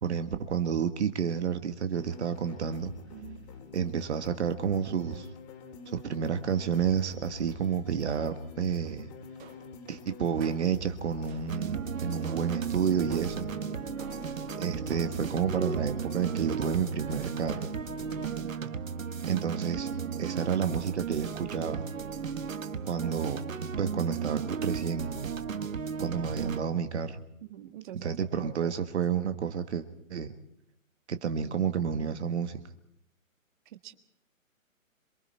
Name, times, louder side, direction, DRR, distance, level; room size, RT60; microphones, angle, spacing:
voice 1, 0.0-2.9 3.7-5.3 5.9-9.1 9.9-13.5 14.6-17.7 19.3-19.9 20.2-21.8 22.8-23.4 23.8-25.3 26.0-27.2 28.0-30.3 31.1-32.6, right 7 dB, 50° right, 9 dB, 1.7 m, -30 dB
sound 1, 1.9-18.4, left 5 dB, 30° left, 2.9 m, -46 dB
voice 2, 3.1-3.4 18.2-18.6 27.4-28.7 33.7-33.9, right 12 dB, 35° right, 8 dB, 1.7 m, -45 dB
sound 2, 8.1-8.6 9.4-9.8 10.4-10.8 11.3-11.7 12.2-12.7 13.1-13.6 14.0-14.4 14.9-15.3, right 6 dB, 20° right, 2.2 m, -51 dB
sound 3, 11.5-26.6, right 6 dB, 70° right, 1.5 m, -35 dB
27.5 x 24.0 x 4.4 m, 0.76 s
figure-of-eight pair, 140°, 41 cm